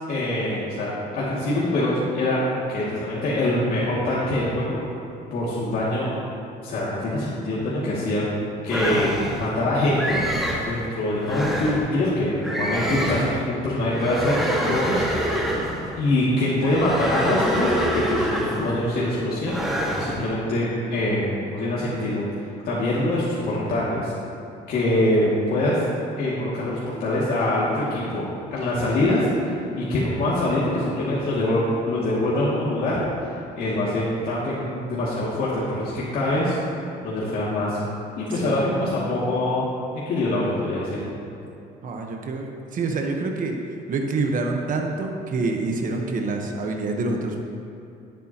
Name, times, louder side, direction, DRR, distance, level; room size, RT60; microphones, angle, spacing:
voice 1, 0.1-4.8 5.3-6.1 6.6-8.2 8.6-10.2 10.6-15.5 16.0-19.6 20.1-22.2 22.6-24.1 24.7-25.8 26.2-33.0 33.2-36.6 37.0-37.8 38.2-39.6 40.1-41.0, left 1 dB, 60° left, -9 dB, 2.4 m, -24 dB
sound 1, 8.7-9.5 10.0-10.7 11.2-11.9 12.4-13.4 13.9-15.9 16.6-18.8 19.4-20.2, equal, ahead, 1.8 m, -26 dB
voice 2, 41.8-47.4, right 3 dB, 50° right, 2 dB, 1.2 m, -27 dB
17.5 x 8.4 x 3.0 m, 2.7 s
cardioid pair, 110°, 17 cm